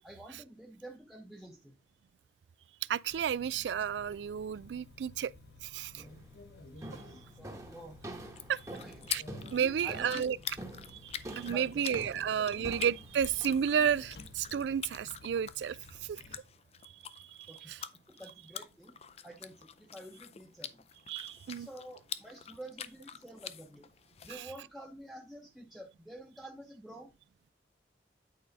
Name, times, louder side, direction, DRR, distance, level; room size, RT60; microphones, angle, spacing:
voice 1, 0.0-1.8 6.9-8.0 8.8-9.1 9.6-10.3 11.4-12.8 17.5-17.7 18.1-18.9 19.2-20.9 21.5-23.9 24.2-27.1, right 1 dB, ahead, 0.8 m, -49 dB
voice 2, 2.9-5.3 5.6-6.0 8.5-8.6 9.1-9.2 9.5-10.4 10.9-15.8 16.0-16.2 17.2-17.4 17.7-17.8 21.1-21.7, right 8 dB, 70° right, 0.3 m, -32 dB
sound 1, 3.1-16.4, left 2 dB, 60° left, 1.1 m, -54 dB
sound 2, 6.0-6.3 6.8-14.8, right 1 dB, 15° right, 1.1 m, -47 dB
sound 3, 8.2-24.4, left 9 dB, 35° left, 0.4 m, -46 dB
8.9 x 4.8 x 3.9 m
head